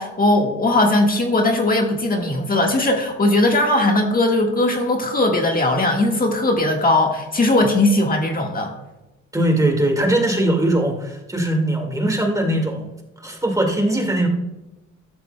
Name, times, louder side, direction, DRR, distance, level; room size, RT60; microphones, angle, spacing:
voice 1, 0.0-8.7, left 2 dB, 30° left, 2 dB, 1.6 m, -19 dB
voice 2, 9.3-12.9 13.2-14.3, right 1 dB, 10° right, 2 dB, 1.9 m, -20 dB
13.0 x 12.5 x 2.2 m, 0.99 s
cardioid pair, 90°, 30 cm